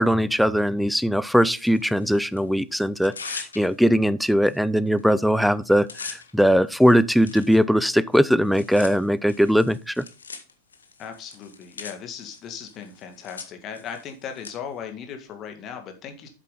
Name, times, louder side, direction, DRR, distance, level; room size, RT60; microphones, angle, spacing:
voice 1, 0.0-10.0, equal, ahead, 0.5 m, -20 dB
Tearing, 1.6-2.4 2.9-4.0 4.5-4.6 4.9-5.2 5.5-14.5, left 5 dB, 75° left, 1.4 m, -42 dB
voice 2, 11.0-16.3, left 7 dB, 30° left, 2.0 m, -37 dB
8.3 x 7.4 x 3.8 m
figure-of-eight pair, 90°, 0 cm